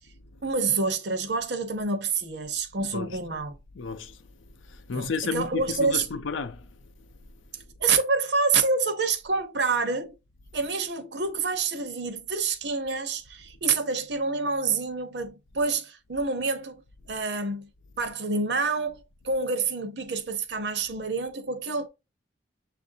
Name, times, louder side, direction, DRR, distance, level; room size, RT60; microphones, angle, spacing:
voice 1, 0.4-3.6 4.9-6.1 7.8-10.2 10.5-16.8 17.1-17.7 18.0-21.9, right 4 dB, 60° right, 0.7 m, -27 dB
voice 2, 2.8-3.2 3.8-4.2 4.7-6.7, left 5 dB, 85° left, 0.5 m, -32 dB
6.8 x 2.5 x 2.7 m
head